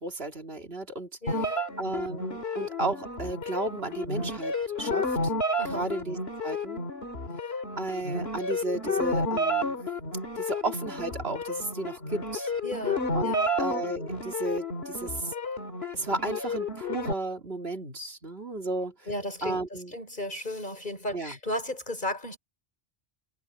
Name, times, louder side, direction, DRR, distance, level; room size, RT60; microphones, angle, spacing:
voice 1, 0.0-5.3 5.6-6.9 7.8-9.7 10.4-12.5 13.1-15.3 15.9-18.9 19.4-19.9 21.1-21.4, right 2 dB, 65° right, 2.8 m, -34 dB
voice 2, 1.2-1.6 5.6-5.9 12.6-13.5 19.1-22.4, left 1 dB, 45° left, 4.7 m, -35 dB
sound 1, 1.3-17.1, left 1 dB, 70° left, 2.6 m, -31 dB
omnidirectional pair, 1.1 m